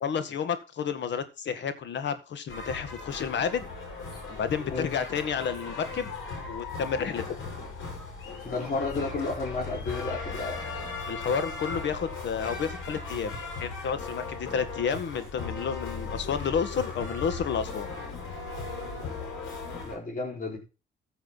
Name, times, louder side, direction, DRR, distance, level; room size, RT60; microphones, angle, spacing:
voice 1, 0.0-3.7 4.3-6.1 6.5-7.4 11.1-17.9, left 6 dB, 65° left, 11 dB, 1.8 m, -31 dB
sound 1, 2.5-19.9, left 4 dB, 85° left, 5.9 m, -37 dB
voice 2, 8.4-10.6 19.8-20.6, left 3 dB, 45° left, -1 dB, 4.3 m, -32 dB
14.5 x 7.2 x 4.1 m, 0.31 s
cardioid pair, 90°, 20 cm